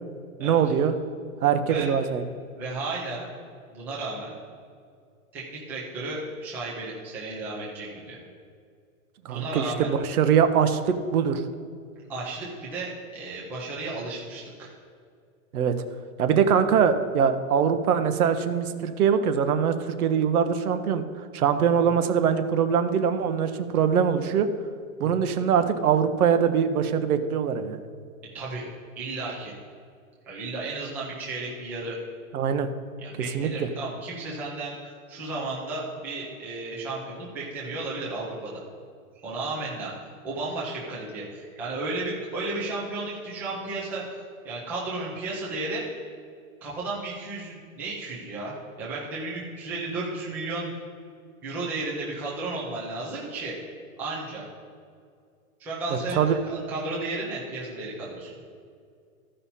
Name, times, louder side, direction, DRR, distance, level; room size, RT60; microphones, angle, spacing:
voice 1, 0.4-0.9 1.4-2.2 9.2-11.4 15.5-15.7 16.2-21.1 21.3-24.5 25.0-27.8 32.3-32.7 33.3-33.7 55.9-56.3, right 7 dB, 85° right, 8 dB, 1.0 m, -23 dB
voice 2, 2.5-3.3 3.7-4.3 5.3-8.2 9.3-9.9 12.1-14.7 25.0-25.1 28.3-28.7 29.0-29.5 30.2-32.0 33.0-38.6 39.1-39.9 40.2-44.0 44.4-45.8 46.6-50.7 51.4-53.6 54.0-54.4 55.6-58.3, right 2 dB, 5° right, -7 dB, 0.5 m, -33 dB
14.0 x 5.5 x 4.2 m, 2.3 s
supercardioid pair, 175°, 43 cm